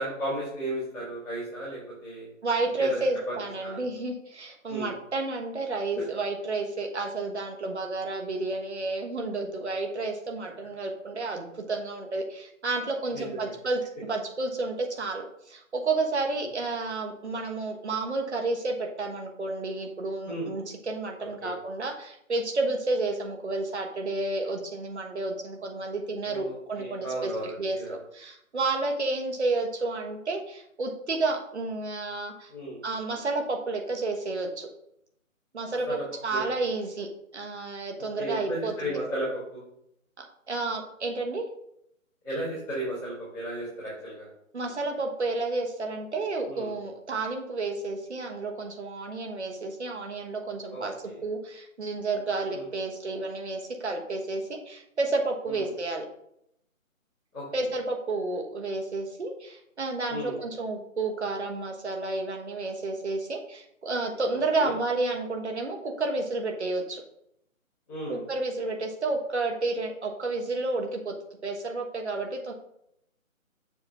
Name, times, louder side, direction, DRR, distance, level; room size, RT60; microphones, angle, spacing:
voice 1, 0.0-2.2 2.8-3.3 3.6-3.8 4.7-4.9 13.1-13.5 20.2-20.5 21.2-21.5 26.3-27.9 32.5-32.8 35.9-36.0 36.3-36.5 38.1-39.6 42.2-44.3 46.5-46.7 50.7-51.2 52.5-52.7 55.5-55.7 57.3-57.4 60.1-60.4 64.3-64.7 67.9-68.2, right 1 dB, ahead, -29 dB, 0.7 m, -34 dB
voice 2, 2.4-27.3 27.6-32.5 32.8-34.7 35.5-37.1 37.3-39.0 40.2-41.4 44.5-50.9 51.2-56.1 57.5-67.0 68.1-71.1 71.4-72.5, right 3 dB, 55° right, 2 dB, 1.3 m, -31 dB
6.8 x 3.5 x 5.3 m, 0.74 s
figure-of-eight pair, 150°, 41 cm